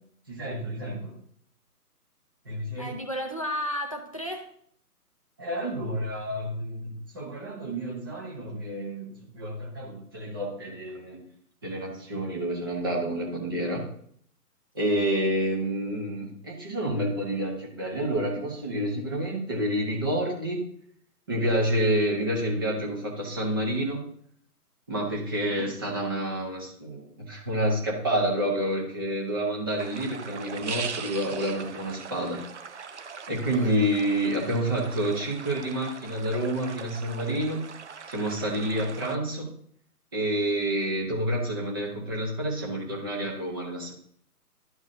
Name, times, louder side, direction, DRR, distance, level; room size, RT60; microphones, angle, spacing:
voice 1, 0.3-1.1 2.5-2.9 5.4-9.1 9.3-11.2 11.6-13.8 14.7-20.6 21.3-24.0 24.9-32.4 33.3-37.6 38.1-39.5 40.1-43.9, right 1 dB, 15° right, -1 dB, 0.9 m, -29 dB
voice 2, 2.8-4.5 14.8-15.1 25.3-25.7 33.5-33.7, equal, 25° left, 3 dB, 0.5 m, -34 dB
sound 1, 29.8-39.2, right 5 dB, 50° right, 0.5 m, -40 dB
12.0 x 4.8 x 2.7 m, 0.64 s
figure-of-eight pair, 150°, 47 cm